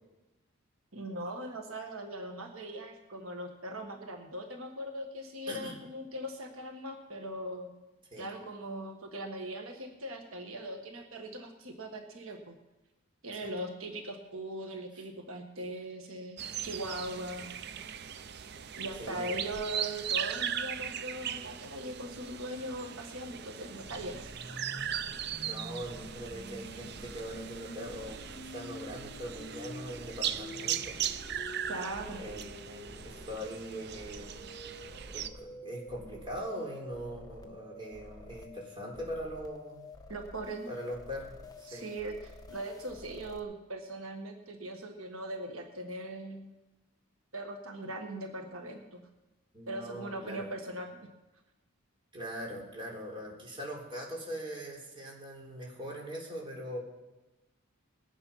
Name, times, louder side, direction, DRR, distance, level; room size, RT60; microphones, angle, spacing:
voice 1, 0.9-7.7 8.2-12.5 13.2-17.5 18.7-24.3 31.7-32.2 40.1-40.7 41.7-46.5 47.3-49.0 49.7-50.9, right 1 dB, 85° right, 4 dB, 1.6 m, -40 dB
voice 2, 5.5-5.8 8.1-8.2 14.9-15.0 19.0-19.4 25.4-28.2 28.5-31.0 32.2-34.3 35.1-39.8 40.7-41.8 49.5-50.5 52.1-56.8, equal, 25° right, -2 dB, 3.7 m, -41 dB
sound 1, 16.4-35.3, right 9 dB, 55° right, 0.6 m, -39 dB
sound 2, 23.8-43.4, left 1 dB, 20° left, 1.1 m, -48 dB
20.5 x 8.9 x 5.7 m, 1.0 s
head